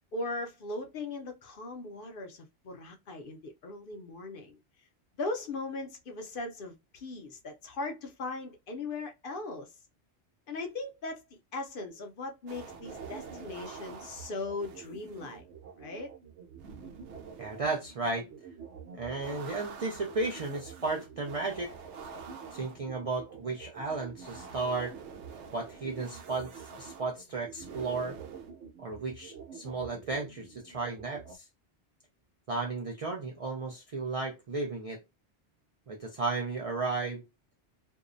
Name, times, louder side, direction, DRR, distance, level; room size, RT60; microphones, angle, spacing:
voice 1, 0.1-4.6 5.2-9.7 10.5-15.5 15.8-16.1, left 3 dB, 60° left, 0.7 m, -39 dB
sound 1, 12.5-31.4, right 6 dB, 85° right, 0.9 m, -46 dB
voice 2, 17.4-18.3 18.9-21.7 22.5-25.0 25.5-26.5 26.8-28.2 28.8-31.4 32.5-35.0 35.9-37.2, right 3 dB, 55° right, 0.3 m, -34 dB
2.7 x 2.0 x 2.5 m
omnidirectional pair, 1.2 m